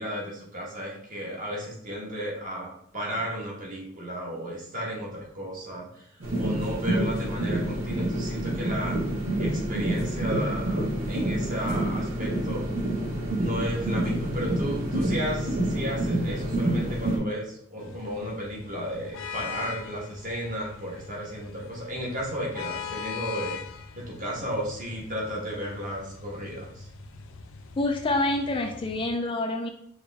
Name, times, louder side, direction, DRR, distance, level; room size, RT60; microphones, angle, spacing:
voice 1, 0.0-6.1 6.4-9.0 9.4-12.7 13.4-23.6 23.9-26.9, equal, 40° right, -3 dB, 1.4 m, -34 dB
sound 1, 6.2-17.2, right 1 dB, 90° right, 1.5 m, -28 dB
sound 2, 17.8-29.1, left 6 dB, 85° left, 0.5 m, -41 dB
voice 2, 27.8-29.7, left 2 dB, 25° left, 3 dB, 0.4 m, -27 dB
5.0 x 3.0 x 3.4 m, 0.67 s
head